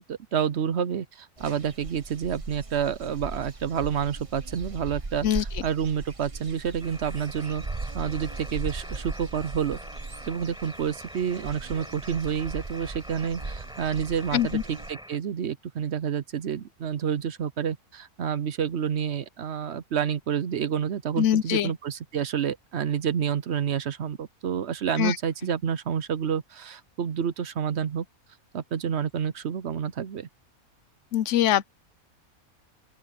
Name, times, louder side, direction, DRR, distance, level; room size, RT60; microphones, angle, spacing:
voice 1, 0.0-7.6 7.9-9.8 10.3-28.0 28.5-30.3, right 8 dB, 55° right, 0.8 m, -29 dB
sound 1, 1.4-14.9, right 3 dB, 25° right, 1.1 m, -38 dB
sound 2, 6.8-15.2, equal, 5° right, 6.7 m, -45 dB
voice 2, 14.3-14.6 21.2-21.7 25.0-25.2 31.1-31.7, left 11 dB, 60° left, 0.9 m, -23 dB
open air
omnidirectional pair, 1.5 m